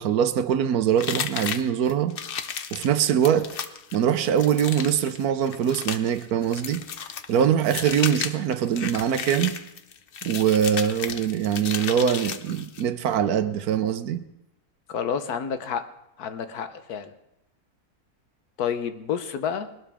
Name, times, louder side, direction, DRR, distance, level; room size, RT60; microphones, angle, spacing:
voice 1, 0.0-2.2 2.7-3.5 3.9-6.8 7.3-9.6 10.2-14.2, right 9 dB, 75° right, 1.2 m, -23 dB
sound 1, 1.0-12.9, left 7 dB, 55° left, 0.6 m, -34 dB
voice 2, 14.9-15.9 16.2-17.1 18.6-19.7, left 7 dB, 75° left, 1.4 m, -29 dB
20.0 x 12.0 x 3.5 m
omnidirectional pair, 1.6 m